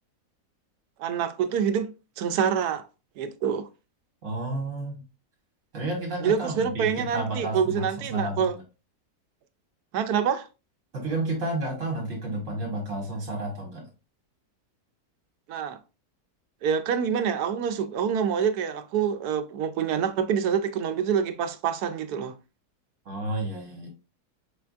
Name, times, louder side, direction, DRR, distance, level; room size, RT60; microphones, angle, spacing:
voice 1, 1.0-2.9 3.2-3.7 6.2-8.6 9.9-10.5 15.5-15.8 16.6-22.4, right 7 dB, 85° right, 1.1 m, -26 dB
voice 2, 4.2-5.0 5.7-8.6 10.9-13.9 23.1-23.9, right 2 dB, 55° right, 1.7 m, -31 dB
4.9 x 3.4 x 2.4 m
omnidirectional pair, 1.6 m